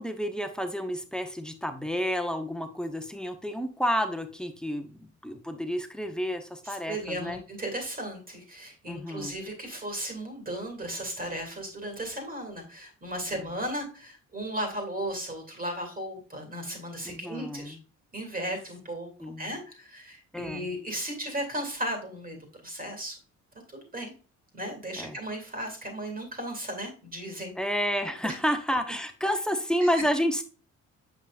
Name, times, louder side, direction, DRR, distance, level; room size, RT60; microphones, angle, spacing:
voice 1, 0.0-7.4 8.9-9.3 13.3-13.5 17.0-17.8 19.2-19.5 20.3-20.7 25.0-25.2 27.6-30.4, equal, 5° left, 7 dB, 0.9 m, -30 dB
voice 2, 6.6-17.8 18.1-22.4 22.6-23.2 23.7-24.1 24.5-27.5 28.2-28.3, right 1 dB, 30° right, 3 dB, 2.6 m, -35 dB
7.1 x 5.4 x 2.4 m, 0.36 s
cardioid pair, 90°, 30 cm